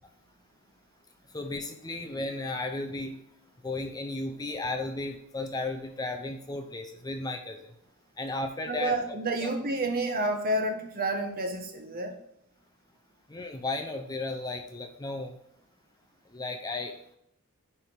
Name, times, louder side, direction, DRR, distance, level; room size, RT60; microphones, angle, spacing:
voice 1, 1.3-3.2 3.6-7.7 8.2-9.0 9.4-9.5 13.3-15.4 16.3-17.0, left 2 dB, 15° left, 4 dB, 0.6 m, -34 dB
voice 2, 8.7-12.2, right 2 dB, 40° right, 4 dB, 1.2 m, -29 dB
9.8 x 3.5 x 4.6 m, 0.73 s
head